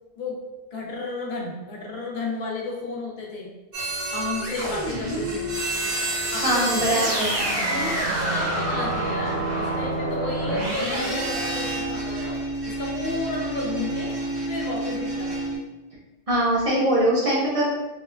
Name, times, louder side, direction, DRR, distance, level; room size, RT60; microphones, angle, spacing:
voice 1, 0.7-3.5 4.1-5.5 6.3-12.4 12.7-14.1 14.5-15.4, left 3 dB, 50° left, -2 dB, 0.7 m, -32 dB
sound 1, 3.7-15.6, right 1 dB, 75° right, 1.1 m, -28 dB
voice 2, 6.3-7.3 16.3-17.7, right 1 dB, 40° right, -6 dB, 0.5 m, -22 dB
3.6 x 2.2 x 2.3 m, 1.1 s
omnidirectional pair, 1.1 m